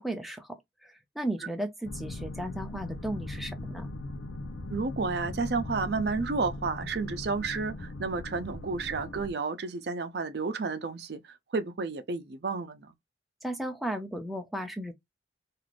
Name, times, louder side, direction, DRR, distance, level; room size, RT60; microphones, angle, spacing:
voice 1, 0.0-3.9 13.4-14.9, right 1 dB, ahead, 0.4 m, -35 dB
sound 1, 1.8-9.3, left 2 dB, 85° left, 0.6 m, -39 dB
voice 2, 4.7-12.9, right 4 dB, 60° right, 0.5 m, -31 dB
2.4 x 2.4 x 3.2 m
head